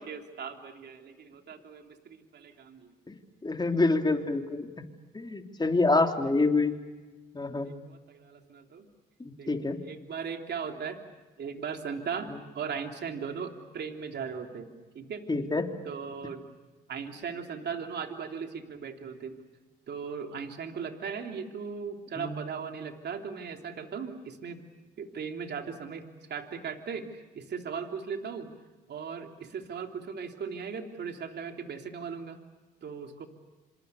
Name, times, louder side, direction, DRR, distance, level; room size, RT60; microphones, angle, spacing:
voice 1, 0.0-2.9 7.6-8.9 9.4-9.5 9.8-11.0 11.4-15.2 15.8-16.5 16.9-19.4 19.9-24.6 25.0-28.5 28.9-32.4 32.8-33.3, right 6 dB, 55° right, 4 dB, 3.3 m, -38 dB
voice 2, 3.4-4.8 5.1-6.7 7.3-7.7 9.5-9.8 15.3-15.7 22.2-22.4, left 3 dB, 20° left, 4 dB, 3.3 m, -26 dB
27.5 x 27.0 x 7.0 m, 1.2 s
supercardioid pair, 65°, 20 cm